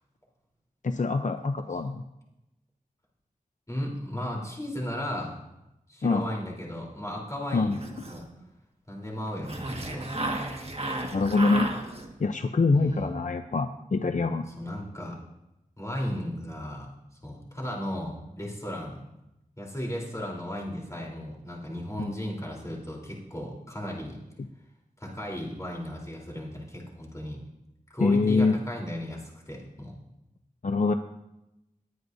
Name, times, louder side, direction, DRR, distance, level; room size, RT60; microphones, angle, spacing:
voice 1, 0.8-2.0 6.0-6.3 7.5-7.8 11.1-11.7 12.2-14.4 22.0-22.1 28.0-28.6 30.6-30.9, left 3 dB, 60° left, 7 dB, 0.6 m, -24 dB
voice 2, 3.7-5.4 5.9-7.7 8.1-8.2 8.9-10.1 12.7-13.1 14.6-15.2 15.8-16.9 17.2-19.0 19.6-24.2 25.0-27.4 27.9-29.9, equal, 20° left, -2 dB, 3.6 m, -35 dB
sound 1, 7.7-8.4 9.4-12.3, right 2 dB, 45° right, 1.7 m, -33 dB
20.0 x 9.4 x 2.7 m, 0.91 s
wide cardioid pair, 45°, 14 cm